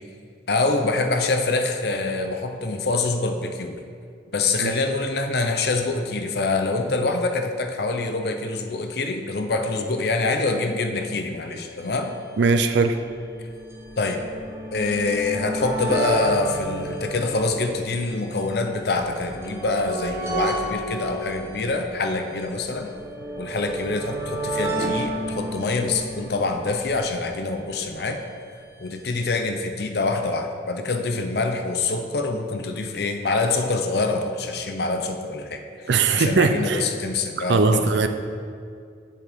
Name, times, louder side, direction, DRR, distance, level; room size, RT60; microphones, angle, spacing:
voice 1, 0.5-3.8 4.3-12.1 14.0-14.2 14.7-22.9 23.4-28.2 28.8-35.6 36.1-37.9, left 3 dB, 60° left, 5 dB, 0.6 m, -25 dB
sound 1, 11.5-11.6 11.8-11.9 12.7-28.0 29.0-29.1 29.2-29.3, right 2 dB, 15° right, 0.8 m, -32 dB
voice 2, 12.4-13.0 35.9-36.8 37.5-38.1, right 4 dB, 70° right, 7 dB, 0.5 m, -19 dB
7.4 x 7.1 x 3.5 m, 2.2 s
head